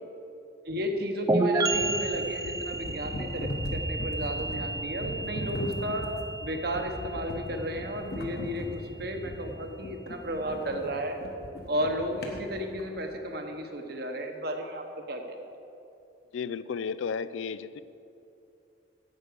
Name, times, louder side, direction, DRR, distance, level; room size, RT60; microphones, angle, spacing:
voice 1, 0.6-6.1 6.4-11.2 11.7-15.4, equal, 55° right, 4 dB, 1.1 m, -33 dB
sound 1, 1.3-8.8, right 2 dB, 15° right, 0.5 m, -32 dB
sound 2, 1.7-12.9, left 1 dB, 55° left, 1.1 m, -38 dB
voice 2, 16.3-17.8, left 6 dB, 85° left, 15 dB, 0.4 m, -33 dB
9.7 x 8.2 x 6.8 m, 2.7 s
head